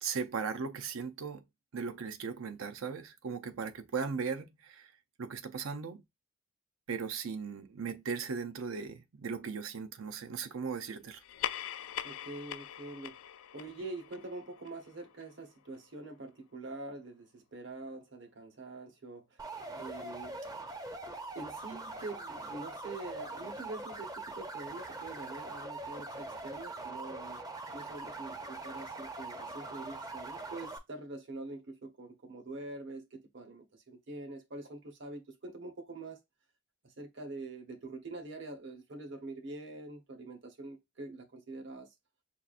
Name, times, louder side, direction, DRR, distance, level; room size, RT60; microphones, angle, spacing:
voice 1, 0.0-1.4 1.7-4.9 5.2-6.0 6.9-11.2, right 5 dB, 85° right, 0.6 m, -37 dB
sound 1, 11.2-16.0, left 10 dB, 80° left, 0.3 m, -42 dB
voice 2, 12.0-13.2 13.5-19.4 19.7-20.4 21.3-27.4 27.7-36.2 36.8-41.9, right 2 dB, 60° right, 0.9 m, -45 dB
sound 2, 19.4-30.8, right 2 dB, 20° right, 0.5 m, -42 dB
5.6 x 2.4 x 2.4 m
head